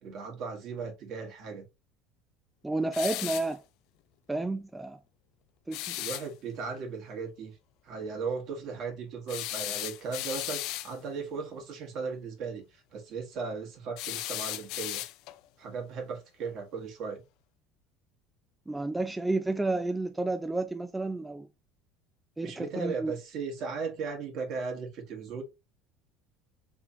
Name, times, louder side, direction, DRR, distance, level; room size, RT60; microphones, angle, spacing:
voice 1, 0.0-1.6 5.9-7.5 7.8-15.0 15.6-17.2 22.4-25.4, right 5 dB, 60° right, 1.5 m, -37 dB
voice 2, 2.6-3.6 4.3-5.0 5.7-6.0 18.7-21.5 22.4-23.1, right 2 dB, 10° right, 0.4 m, -31 dB
sound 1, 2.9-3.5 5.7-6.3 9.3-10.9 14.0-15.4, left 16 dB, 65° left, 0.3 m, -36 dB
3.6 x 3.3 x 2.6 m
supercardioid pair, 85°, 0 cm